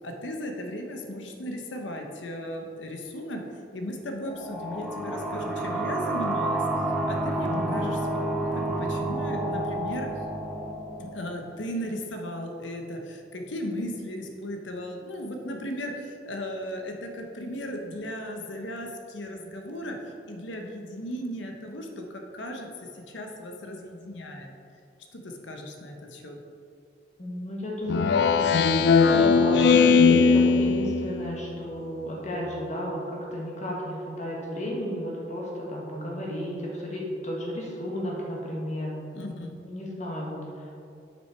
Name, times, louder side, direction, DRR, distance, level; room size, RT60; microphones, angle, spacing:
voice 1, 0.0-3.4 3.7-6.6 7.0-8.1 8.4-10.1 11.0-20.0 20.2-24.5 25.1-26.4 39.1-39.6, equal, 85° left, 3 dB, 0.9 m, -36 dB
sound 1, 4.2-11.7, right 1 dB, ahead, 0.5 m, -30 dB
voice 2, 7.5-7.8 27.2-28.6 29.0-39.0 39.7-40.4, equal, 40° left, -3 dB, 1.5 m, -33 dB
Speech synthesizer, 27.9-31.4, left 5 dB, 60° left, 0.3 m, -19 dB
6.3 x 6.1 x 4.5 m, 2.5 s
head